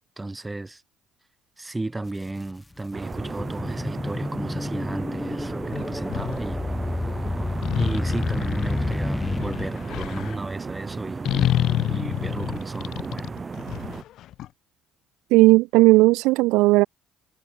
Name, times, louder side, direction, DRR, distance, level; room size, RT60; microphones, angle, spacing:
voice 1, 0.2-0.8 1.6-6.7 7.8-13.3, right 2 dB, 15° right, 6.7 m, -34 dB
sound 1, 2.1-2.2 2.7-10.4, left 2 dB, 15° left, 3.8 m, -30 dB
sound 2, 2.9-14.0, right 4 dB, 35° right, 3.3 m, -35 dB
sound 3, 5.7-6.4 7.6-10.4 11.3-14.5, left 13 dB, 65° left, 0.7 m, -28 dB
voice 2, 15.3-16.9, right 22 dB, 75° right, 0.8 m, -16 dB
hypercardioid pair, 55°, 0 cm